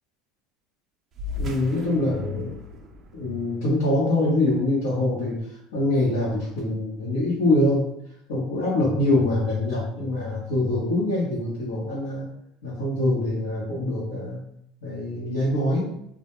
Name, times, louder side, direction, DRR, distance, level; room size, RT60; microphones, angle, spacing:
sound 1, 1.1-6.0, left 3 dB, 35° right, 0.4 m, -39 dB
voice 1, 1.4-2.5 3.1-7.9 8.3-12.3 12.6-14.4 14.8-15.9, left 1 dB, 90° left, -8 dB, 0.8 m, -24 dB
2.2 x 2.1 x 2.9 m, 0.76 s
supercardioid pair, 125°, 0 cm